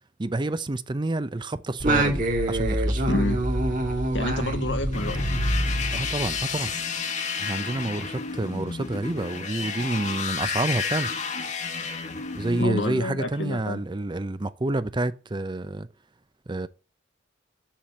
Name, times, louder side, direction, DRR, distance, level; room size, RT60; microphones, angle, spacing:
voice 1, 0.2-3.1 5.9-6.7 7.4-11.1 12.4-15.9 16.5-16.7, right 2 dB, 25° right, 0.6 m, -28 dB
Singing, 1.8-6.6, right 1 dB, 45° right, 2.3 m, -25 dB
voice 2, 3.1-3.4 4.1-5.3 12.6-13.8, left 2 dB, 75° left, 1.7 m, -29 dB
sound 1, 4.9-12.6, left 5 dB, 40° left, 1.4 m, -31 dB
7.4 x 6.9 x 7.5 m
head